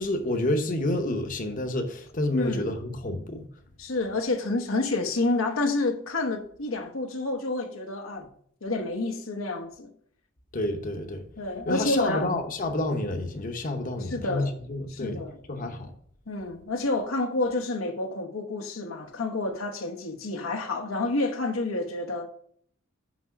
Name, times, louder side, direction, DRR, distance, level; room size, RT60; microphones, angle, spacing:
voice 1, 0.0-3.5 10.5-11.2 11.7-15.2 15.5-15.9, left 1 dB, 40° left, 0.9 m, -29 dB
voice 2, 2.3-2.8 3.8-8.3 8.6-9.9 11.4-12.3 14.0-14.5 14.9-15.4 16.3-22.3, left 2 dB, 85° left, 1.0 m, -29 dB
6.1 x 5.3 x 5.8 m
head